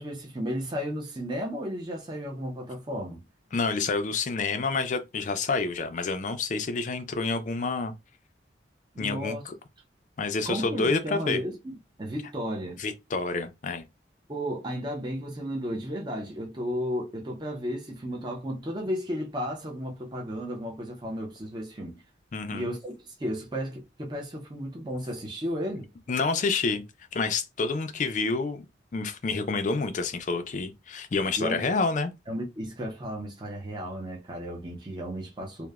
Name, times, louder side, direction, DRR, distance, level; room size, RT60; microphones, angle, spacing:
voice 1, 0.0-3.2 8.9-9.4 10.4-12.8 14.3-22.0 22.5-25.9 31.4-31.6 32.3-35.7, equal, 25° right, 0.5 m, -34 dB
voice 2, 3.5-7.9 9.0-9.5 10.2-11.4 12.8-13.8 22.3-22.7 26.1-26.8 27.1-28.7 28.9-32.1, left 4 dB, 40° left, 0.4 m, -28 dB
2.9 x 2.1 x 2.3 m
head